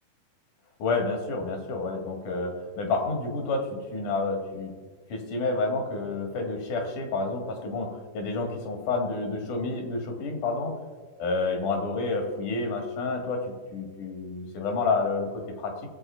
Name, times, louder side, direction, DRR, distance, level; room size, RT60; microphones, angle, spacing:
voice 1, 0.8-4.7 5.1-10.7 11.2-15.7, left 3 dB, 75° left, 3 dB, 3.2 m, -29 dB
19.5 x 7.6 x 4.4 m, 1.4 s
omnidirectional pair, 3.7 m